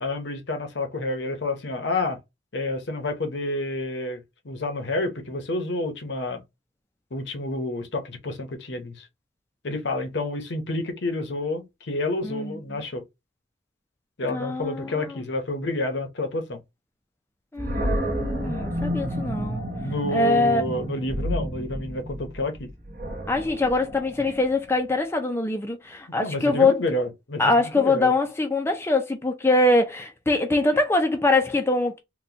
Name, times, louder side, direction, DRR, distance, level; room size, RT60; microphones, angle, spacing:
voice 1, 0.0-2.2 2.5-6.4 7.1-9.1 9.6-13.0 14.2-16.6 19.8-22.7 26.2-28.1, left 2 dB, 65° left, 0.8 m, -29 dB
voice 2, 12.2-12.6 14.3-15.2 17.5-19.6 20.1-20.8 23.3-26.8 27.4-32.0, left 2 dB, 15° left, 0.4 m, -23 dB
Animal, 17.6-24.7, equal, 45° right, 1.0 m, -31 dB
3.9 x 2.2 x 2.8 m
head